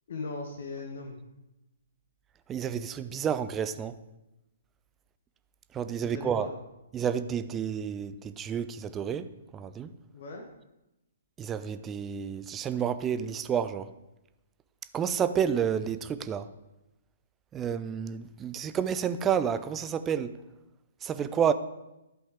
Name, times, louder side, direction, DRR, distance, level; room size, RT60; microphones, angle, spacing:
voice 1, 0.1-1.2 6.0-6.5 10.1-10.5, left 3 dB, 55° left, 1.2 m, -38 dB
voice 2, 2.5-4.0 5.7-6.5 6.9-9.9 11.4-13.9 14.9-16.5 17.5-20.4 21.0-21.5, right 8 dB, 15° right, 0.4 m, -30 dB
11.5 x 5.5 x 4.8 m
figure-of-eight pair, 125°, 0 cm